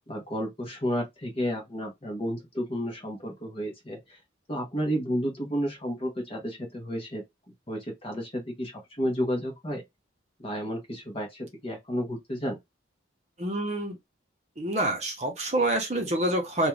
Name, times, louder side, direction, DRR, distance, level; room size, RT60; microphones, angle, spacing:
voice 1, 0.1-4.2 4.5-7.2 7.7-9.8 10.4-12.6, equal, 30° left, 0.8 m, -31 dB
voice 2, 13.4-14.0 14.6-16.7, right 1 dB, 35° right, 0.7 m, -27 dB
2.5 x 2.2 x 3.0 m
head